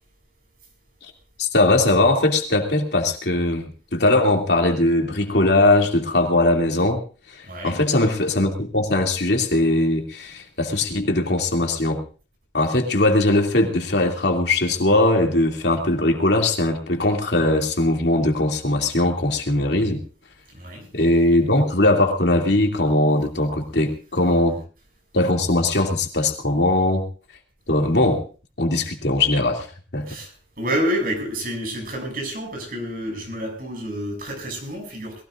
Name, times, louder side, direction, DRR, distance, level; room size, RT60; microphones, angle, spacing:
voice 1, 1.4-7.0 7.3-12.0 12.5-20.0 20.9-24.6 25.1-27.1 27.7-28.2 28.6-29.7 29.9-30.1, left 2 dB, 70° left, 2 dB, 2.8 m, -20 dB
voice 2, 7.4-7.8 20.5-20.9 30.1-35.2, equal, 50° right, 2 dB, 7.4 m, -29 dB
22.0 x 17.0 x 2.6 m, 0.37 s
head